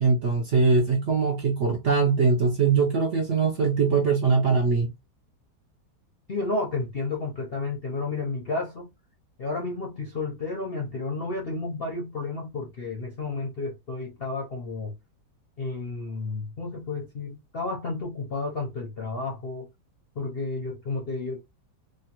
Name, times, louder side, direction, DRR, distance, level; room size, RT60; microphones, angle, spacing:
voice 1, 0.0-4.9, right 4 dB, 65° right, 0.7 m, -22 dB
voice 2, 6.3-8.9 9.4-14.9 15.6-19.7 20.2-21.4, left 3 dB, 50° left, 0.7 m, -31 dB
3.1 x 2.3 x 2.8 m
omnidirectional pair, 1.9 m